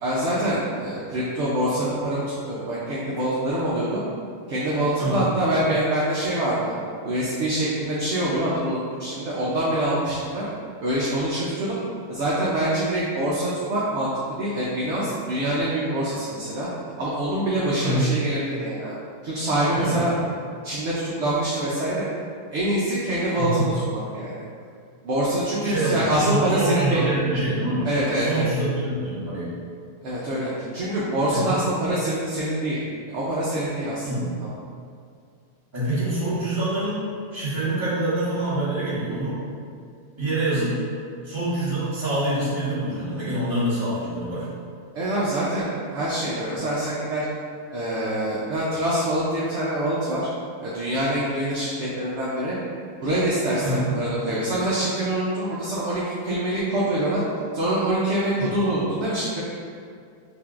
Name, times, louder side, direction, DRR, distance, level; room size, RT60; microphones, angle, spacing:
voice 1, 0.0-4.0 4.5-6.7 7.0-10.4 10.8-11.8 12.1-14.1 14.4-16.7 17.0-18.9 19.2-20.2 20.6-22.1 22.5-24.3 25.0-27.0 27.8-28.4 30.0-32.8 33.1-34.1 34.4-34.5 44.9-47.3 47.7-50.3 50.6-52.5 53.0-57.2 57.5-59.4, right 1 dB, 65° right, -7 dB, 0.7 m, -25 dB
voice 2, 23.4-23.7 25.6-27.9 28.2-29.5 31.3-31.6 34.0-34.3 35.7-39.4 40.2-40.7 41.2-44.5 53.6-53.9 58.3-58.6, right 1 dB, 20° right, -12 dB, 1.2 m, -25 dB
5.1 x 2.6 x 2.4 m, 2.3 s
omnidirectional pair, 1.7 m